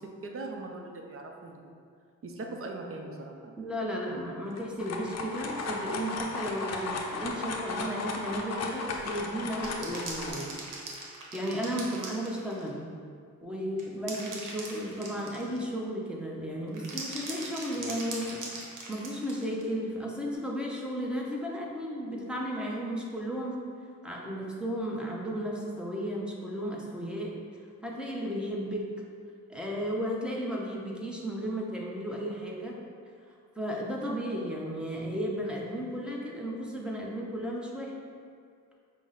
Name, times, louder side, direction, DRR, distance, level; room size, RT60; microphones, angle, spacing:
voice 1, 0.0-1.7 2.2-3.6, right 2 dB, 45° right, 2 dB, 0.5 m, -40 dB
voice 2, 3.6-10.5 11.3-12.8 13.4-18.4 18.9-23.6 24.0-27.3 27.8-28.9 29.5-32.8 33.6-37.9, equal, 5° right, -3 dB, 0.7 m, -34 dB
sound 1, 4.5-10.3, left 3 dB, 55° left, 0.5 m, -35 dB
sound 2, 9.5-12.7 13.8-15.7 16.7-19.7 20.3-20.4, right 3 dB, 75° right, 0.9 m, -40 dB
5.7 x 2.1 x 3.9 m, 2.2 s
cardioid pair, 90°, 31 cm